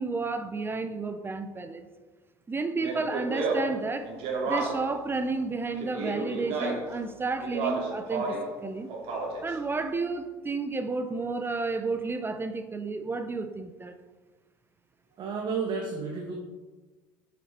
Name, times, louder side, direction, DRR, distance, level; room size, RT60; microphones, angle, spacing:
voice 1, 0.0-1.9 2.5-4.1 4.4-8.9 9.4-13.9, right 3 dB, 20° right, 9 dB, 0.9 m, -31 dB
Speech, 2.8-5.0 5.8-7.0 7.4-8.5 8.9-9.5, right 3 dB, 60° right, 2.5 m, -31 dB
voice 2, 15.2-16.3, right 5 dB, 45° right, -1 dB, 1.6 m, -31 dB
8.1 x 7.7 x 4.4 m, 1.3 s
hypercardioid pair, 75°, 11 cm